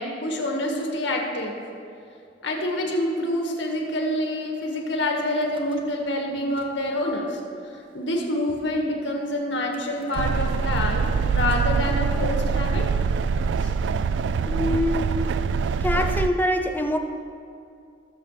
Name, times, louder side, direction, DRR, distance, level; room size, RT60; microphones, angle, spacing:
voice 1, 0.0-1.6 2.4-7.4 7.7-12.9 13.6-13.7, left 1 dB, 80° left, 0 dB, 1.8 m, -27 dB
Car / Engine starting / Idling, 5.3-6.1 6.4-7.1 7.8-7.9 8.1-8.2 8.5-8.8 9.7-15.9, equal, 30° right, 0.9 m, -43 dB
inside vehicle noise, 10.1-16.3, right 5 dB, 75° right, 0.3 m, -24 dB
voice 2, 14.5-15.3 15.8-17.0, left 1 dB, 10° left, 4 dB, 0.6 m, -24 dB
18.5 x 7.1 x 3.3 m, 2.5 s
head